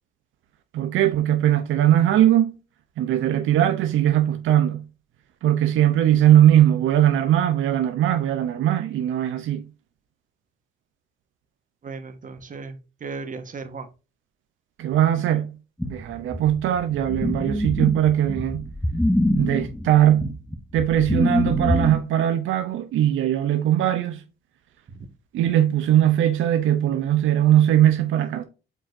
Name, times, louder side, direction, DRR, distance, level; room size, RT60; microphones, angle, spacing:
voice 1, 0.7-2.5 3.0-4.8 5.4-9.7 14.8-15.5 15.8-18.6 19.3-20.4 20.7-24.2 25.3-28.4, right 11 dB, 80° right, 0.8 m, -20 dB
voice 2, 11.8-13.9 24.9-25.1, right 4 dB, 40° right, 1.5 m, -36 dB
sound 1, 15.8-22.0, left 1 dB, 5° left, 1.0 m, -24 dB
8.0 x 4.6 x 2.7 m
cardioid pair, 90°, 20 cm